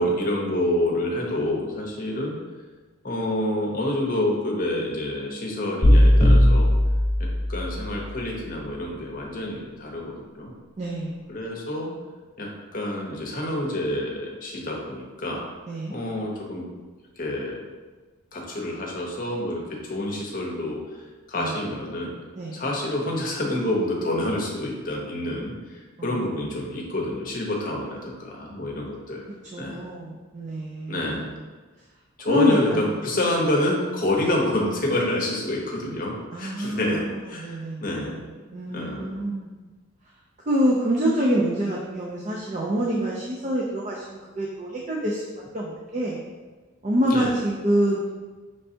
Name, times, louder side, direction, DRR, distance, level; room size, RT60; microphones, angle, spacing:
voice 1, 0.0-2.4 3.0-6.7 7.5-10.5 11.3-11.9 12.4-15.4 15.9-16.7 17.2-17.6 18.3-20.8 21.3-22.2 22.5-29.2 29.6-29.8 30.9-31.3 32.2-38.2 38.7-39.2 47.1-47.3, left 1 dB, 40° left, -1 dB, 0.8 m, -27 dB
sound 1, 5.8-7.9, left 1 dB, 15° left, 1.4 m, -17 dB
voice 2, 10.8-11.2 15.7-16.0 21.4-21.5 22.4-22.6 26.0-26.2 29.5-31.2 32.3-32.8 36.3-39.5 40.5-45.2 45.5-46.2 46.8-48.1, equal, 35° right, -3 dB, 0.4 m, -26 dB
5.3 x 3.3 x 2.7 m, 1.3 s
head